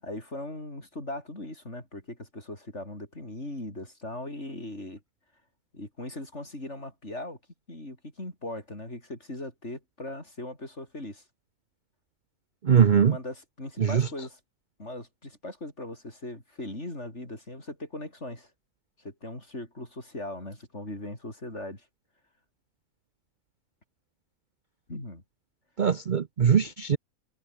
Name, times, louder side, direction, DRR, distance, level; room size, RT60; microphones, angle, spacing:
voice 1, 0.0-5.0 5.7-7.4 7.7-11.2 12.8-14.4 14.8-18.5 19.0-21.9 24.9-25.2, left 1 dB, 50° left, 7.3 m, -39 dB
voice 2, 12.6-13.2 13.8-14.1 25.8-27.0, right 7 dB, 45° right, 0.6 m, -21 dB
omnidirectional pair, 1.5 m